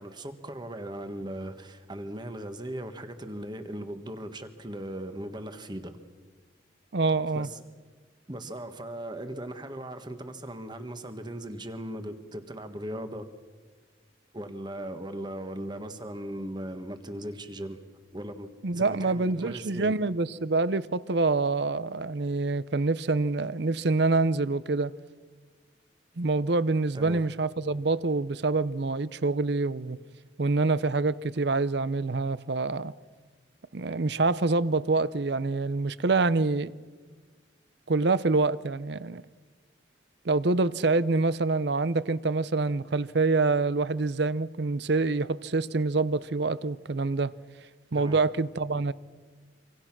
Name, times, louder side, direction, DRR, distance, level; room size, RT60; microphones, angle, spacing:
voice 1, 0.0-6.0 7.3-7.6 8.3-13.3 14.3-17.8 18.1-18.5 18.7-20.0 26.9-27.2 47.9-48.2, right 1 dB, 25° right, 1.5 m, -38 dB
voice 2, 6.9-7.5 18.6-24.9 26.2-30.0 30.4-32.9 33.7-36.7 37.9-39.2 40.2-47.3 47.9-48.9, right 3 dB, 60° right, 0.7 m, -26 dB
25.5 x 25.5 x 6.1 m
head